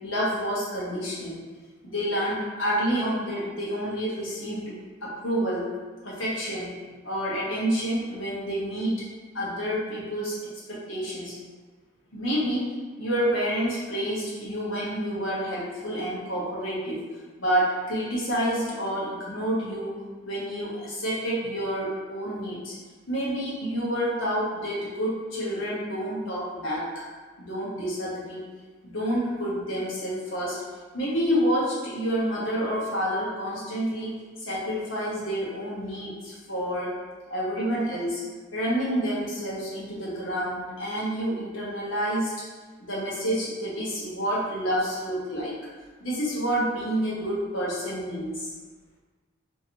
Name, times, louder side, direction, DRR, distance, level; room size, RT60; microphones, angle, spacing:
voice 1, 0.0-1.3 1.8-4.8 5.0-5.7 6.0-6.8 7.0-8.9 9.3-10.4 10.7-11.3 12.1-12.6 13.0-17.0 17.4-20.0 20.2-22.7 23.1-26.8 27.4-28.4 28.8-30.6 30.9-34.1 34.4-36.9 37.3-38.2 38.5-42.3 42.8-45.5 46.0-48.5, equal, 70° left, -7 dB, 1.1 m, -28 dB
2.9 x 2.7 x 2.8 m, 1.4 s
head